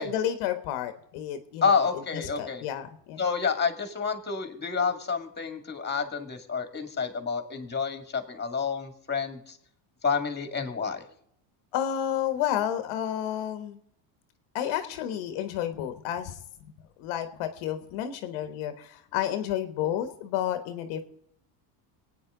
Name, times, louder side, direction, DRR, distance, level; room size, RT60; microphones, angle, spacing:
voice 1, 0.0-1.8 2.4-3.2 11.7-13.8 14.5-16.3 17.0-21.0, left 10 dB, 80° left, 9 dB, 1.4 m, -31 dB
voice 2, 1.6-2.7 3.2-9.6 10.0-11.0, left 5 dB, 20° left, 7 dB, 2.2 m, -29 dB
26.0 x 9.3 x 3.9 m, 0.70 s
cardioid pair, 110°, 48 cm